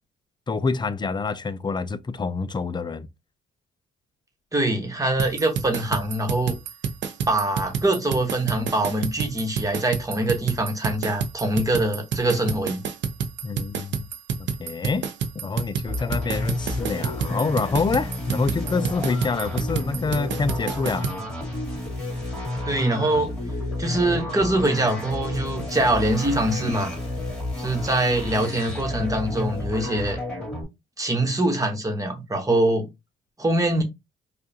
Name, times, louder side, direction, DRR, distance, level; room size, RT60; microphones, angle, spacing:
voice 1, 0.5-3.1 13.4-14.1 14.4-15.1 15.3-21.1, left 4 dB, 20° left, 0.4 m, -27 dB
voice 2, 4.5-6.6 7.3-12.8 22.7-23.3 23.8-27.0 27.6-30.2 31.0-32.9 33.4-33.8, right 1 dB, 15° right, 1.2 m, -23 dB
sound 1, 5.2-21.2, right 6 dB, 65° right, 0.6 m, -29 dB
sound 2, 15.9-30.6, left 2 dB, 5° left, 2.1 m, -31 dB
4.8 x 2.4 x 2.9 m
cardioid pair, 90°, 20 cm